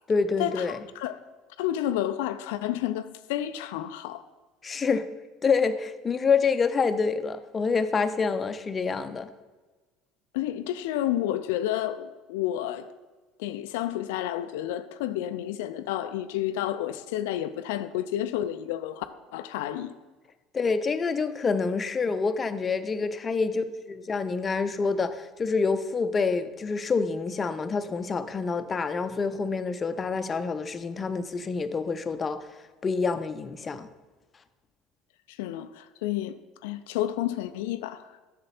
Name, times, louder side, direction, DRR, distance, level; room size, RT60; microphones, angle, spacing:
voice 1, 0.1-0.8 4.6-5.1 5.4-9.3 20.5-32.5 32.8-33.9, left 4 dB, 30° left, 0.6 m, -27 dB
voice 2, 1.6-4.2 10.3-12.9 13.4-19.1 19.3-19.9 35.3-38.1, left 12 dB, 70° left, 0.4 m, -30 dB
7.9 x 6.7 x 4.2 m
hypercardioid pair, 65°, 0 cm